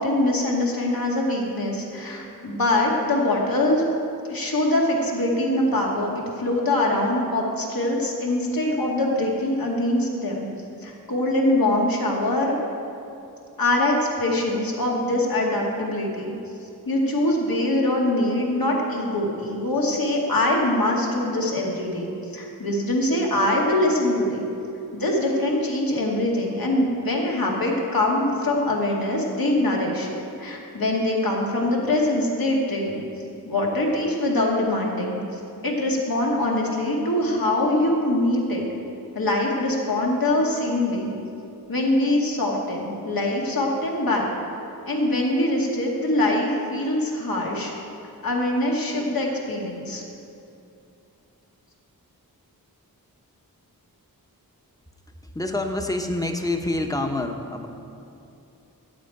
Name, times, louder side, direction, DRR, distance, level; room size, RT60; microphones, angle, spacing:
voice 1, 0.0-3.8 4.3-6.1 6.4-10.5 10.8-12.5 13.6-16.4 16.9-24.4 24.9-30.1 30.4-33.0 33.5-38.6 39.1-41.1 41.7-44.3 44.9-47.7 48.2-50.0, left 1 dB, 70° left, -2 dB, 2.1 m, -23 dB
voice 2, 55.2-57.7, left 2 dB, 10° left, 4 dB, 1.0 m, -27 dB
14.0 x 5.0 x 9.0 m, 2.7 s
wide cardioid pair, 85°, 36 cm